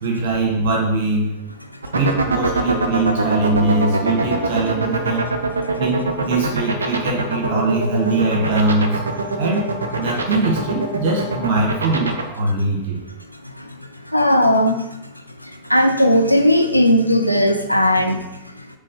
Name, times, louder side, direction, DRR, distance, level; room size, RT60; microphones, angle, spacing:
voice 1, 0.0-1.3 1.9-5.3 5.8-9.0 9.4-9.7 10.0-13.0, right 2 dB, 50° right, -1 dB, 1.3 m, -21 dB
sound 1, 1.8-12.2, right 3 dB, 75° right, 0.5 m, -22 dB
voice 2, 14.1-14.8 15.4-18.3, equal, 90° left, 6 dB, 0.4 m, -17 dB
4.1 x 3.0 x 3.7 m, 0.91 s
figure-of-eight pair, 90°, 0 cm